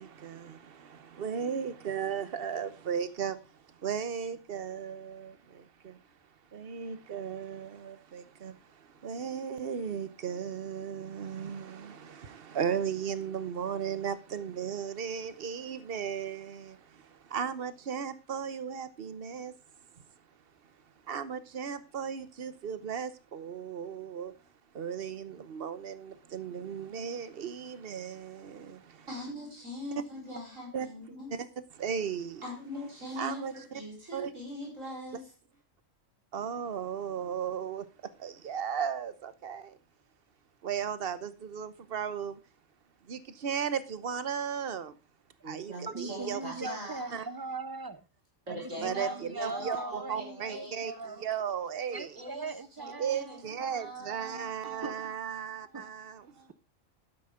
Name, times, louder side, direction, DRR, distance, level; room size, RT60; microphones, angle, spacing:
voice 1, 0.0-6.0 6.5-19.5 19.9-20.0 20.6-20.7 21.0-24.4 24.7-29.1 30.0-30.1 30.7-30.9 31.3-31.5 31.7-32.4 33.2-33.8 34.1-34.3 36.3-37.9 38.2-39.8 40.6-42.4 43.0-45.0 45.4-46.7 47.1-47.2 48.8-52.2 53.0-56.5, right 7 dB, 50° right, 1.1 m, -36 dB
voice 2, 29.1-31.3 32.4-35.3 45.4-47.3 48.5-51.3 52.2-52.5 52.8-55.1 55.4-56.0 56.3-56.5, equal, 90° right, 5.9 m, -42 dB
voice 3, 45.9-48.0 48.5-51.3 51.9-53.4 53.8-53.9 54.8-55.1 55.7-55.8, right 2 dB, 25° right, 0.6 m, -39 dB
12.5 x 9.2 x 5.0 m
omnidirectional pair, 1.3 m